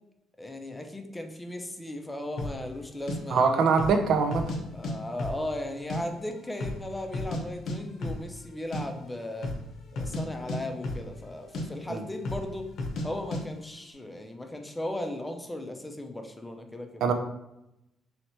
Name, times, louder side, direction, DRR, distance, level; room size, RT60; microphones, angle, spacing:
voice 1, 0.4-3.6 4.7-9.5 9.9-12.7 13.0-17.0, left 1 dB, 10° left, 4 dB, 0.5 m, -36 dB
sound 1, 2.4-2.6 3.1-3.2 3.7-4.0 4.3-4.9 5.2-6.0 6.3-6.4 6.6-7.4 7.7-7.8 8.0-8.2 8.5-8.8 9.3-9.7 9.9-11.3 11.5-11.7 12.2-12.5 12.8-13.1 13.3-13.4, left 2 dB, 65° left, 0.7 m, -33 dB
voice 2, 3.3-4.4 11.9-12.0 17.0-17.1, right 5 dB, 65° right, 6 dB, 0.4 m, -23 dB
3.2 x 2.8 x 4.3 m, 0.86 s
cardioid pair, 135°, 0 cm